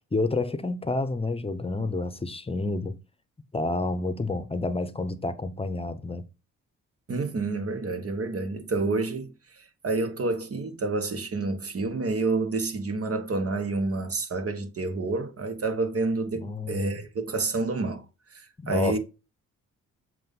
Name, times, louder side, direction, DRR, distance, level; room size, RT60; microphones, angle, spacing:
voice 1, 0.1-2.9 3.5-6.2 16.3-17.0 18.6-19.0, left 2 dB, 15° left, 1.0 m, -29 dB
voice 2, 7.1-18.0 18.3-19.0, right 3 dB, 45° right, 1.6 m, -29 dB
7.6 x 2.7 x 5.4 m
supercardioid pair, 65°, 32 cm